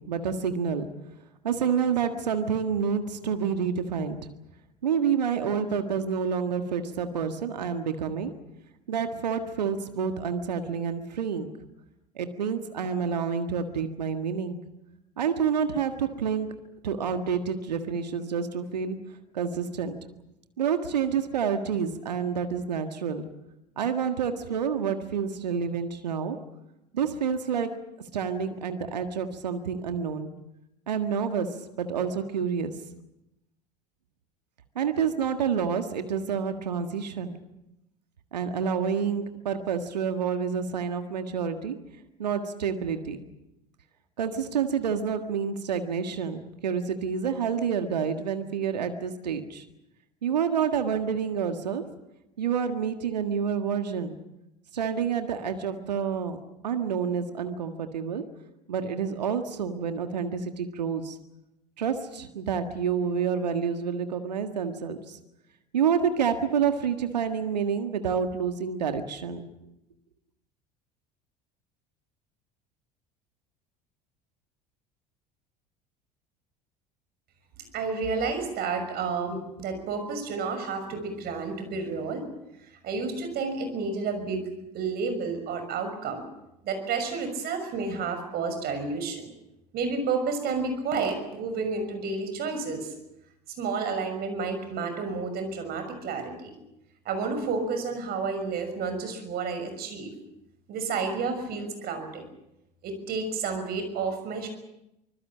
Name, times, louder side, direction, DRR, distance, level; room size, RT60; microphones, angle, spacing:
voice 1, 0.1-0.9 1.4-4.2 4.8-8.3 8.9-11.5 12.1-14.6 15.2-16.5 16.8-19.0 19.3-20.0 20.6-23.2 23.8-26.4 26.9-27.7 28.1-30.3 30.9-31.5 31.8-32.7 34.7-37.4 38.3-41.8 42.2-43.2 44.2-49.6 50.2-51.8 52.4-54.2 54.7-56.4 56.6-58.2 58.7-61.2 61.8-65.2 65.7-69.5, right 7 dB, 75° right, 8 dB, 1.7 m, -28 dB
voice 2, 77.7-82.3 82.8-84.5 84.7-86.2 86.6-89.3 89.7-92.9 93.6-96.5 97.0-100.1 100.7-102.3 102.8-104.5, right 4 dB, 50° right, 7 dB, 6.2 m, -30 dB
25.0 x 21.5 x 7.3 m, 0.89 s
figure-of-eight pair, 70°, 21 cm